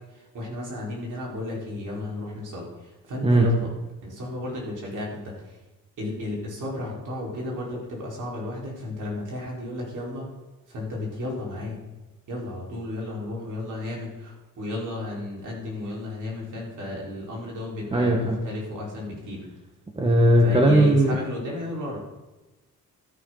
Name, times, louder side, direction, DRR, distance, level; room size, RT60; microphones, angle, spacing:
voice 1, 0.1-3.7 4.0-5.6 6.0-10.3 10.7-11.8 12.3-19.4 20.4-22.0, left 1 dB, 70° right, -3 dB, 4.5 m, -33 dB
voice 2, 17.9-18.4 20.0-21.2, right 1 dB, 15° right, 2 dB, 1.5 m, -18 dB
13.0 x 11.0 x 4.0 m, 1.1 s
cardioid pair, 120°, 32 cm